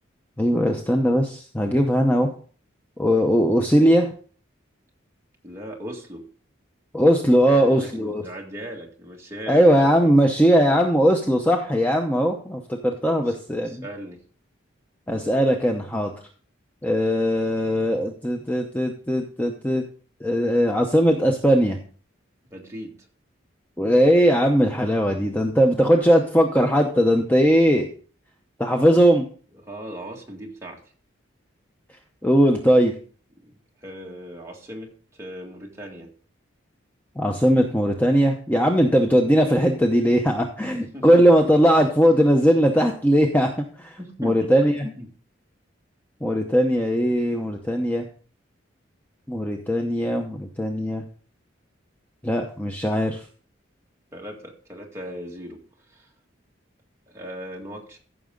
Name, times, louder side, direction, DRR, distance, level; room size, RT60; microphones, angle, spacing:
voice 1, 0.4-2.3 3.0-4.1 6.9-8.2 9.5-13.8 15.1-16.1 16.8-19.8 20.2-21.8 23.8-27.9 28.6-29.2 32.2-32.9 37.2-43.5 43.8-44.9 46.2-48.1 49.3-51.0 52.2-53.2, equal, 10° left, 3 dB, 0.7 m, -19 dB
voice 2, 5.4-6.3 7.5-10.1 13.0-14.2 22.5-23.0 29.5-30.8 33.4-36.1 40.9-41.2 44.0-44.5 44.8-45.1 54.1-56.1 57.1-58.0, equal, 15° right, -1 dB, 1.9 m, -38 dB
14.5 x 6.3 x 3.8 m, 0.43 s
head